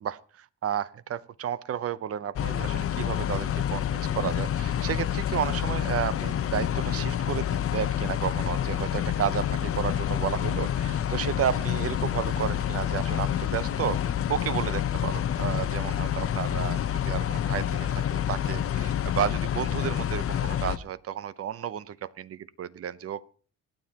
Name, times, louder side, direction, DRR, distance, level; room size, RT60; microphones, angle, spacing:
voice 1, 0.0-23.2, right 9 dB, 50° right, 18 dB, 0.8 m, -32 dB
sound 1, 2.4-20.8, left 10 dB, 50° left, 0.8 m, -28 dB
sound 2, 2.7-10.7, left 10 dB, 85° left, 1.2 m, -47 dB
25.0 x 9.6 x 2.9 m, 0.42 s
cardioid pair, 90°, 30 cm